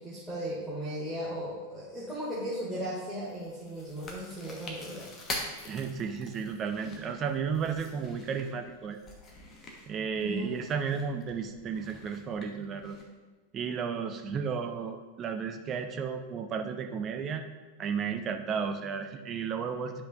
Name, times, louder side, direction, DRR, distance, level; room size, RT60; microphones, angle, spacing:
voice 1, 0.0-5.3 10.2-10.6, right 1 dB, ahead, -9 dB, 2.2 m, -36 dB
Chewing mastication, 3.3-13.1, left 2 dB, 25° left, 1.3 m, -45 dB
voice 2, 5.7-9.0 9.9-13.0 13.5-17.4 17.8-20.0, right 6 dB, 30° right, 5 dB, 0.6 m, -33 dB
10.5 x 5.5 x 2.6 m, 1.3 s
figure-of-eight pair, 90°, 0 cm